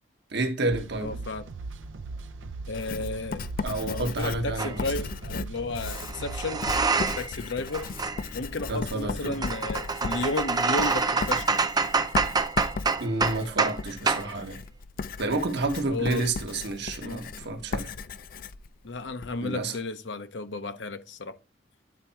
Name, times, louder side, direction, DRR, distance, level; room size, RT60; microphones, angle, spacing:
voice 1, 0.3-1.1 3.6-4.9 8.7-9.4 13.0-14.6 15.2-17.9 19.4-19.7, right 2 dB, 65° right, 1.1 m, -30 dB
sound 1, 0.7-7.0, right 3 dB, 85° right, 0.5 m, -39 dB
voice 2, 1.0-1.4 2.7-3.5 3.8-6.7 7.2-7.9 8.3-11.6 15.9-16.3 17.0-17.3 18.8-21.3, left 3 dB, 70° left, 0.8 m, -33 dB
Writing, 2.7-19.4, left 4 dB, 50° left, 0.4 m, -37 dB
sound 2, 4.6-4.8 5.8-7.4 7.7-13.8 14.1-14.3, right 4 dB, 20° right, 0.5 m, -27 dB
9.6 x 3.6 x 4.3 m
head